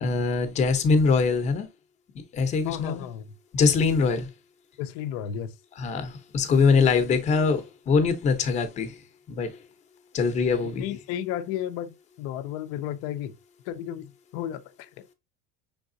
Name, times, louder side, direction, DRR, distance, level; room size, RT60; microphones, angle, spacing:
voice 1, 0.0-1.7 2.3-3.0 3.5-4.3 5.8-9.0 9.3-9.6 10.1-10.9, left 4 dB, 25° left, 0.8 m, -23 dB
voice 2, 2.6-3.3 4.0-4.2 4.8-5.5 10.6-13.3 13.7-15.0, left 10 dB, 55° left, 0.6 m, -33 dB
5.7 x 3.5 x 2.6 m
cardioid pair, 170°, 30 cm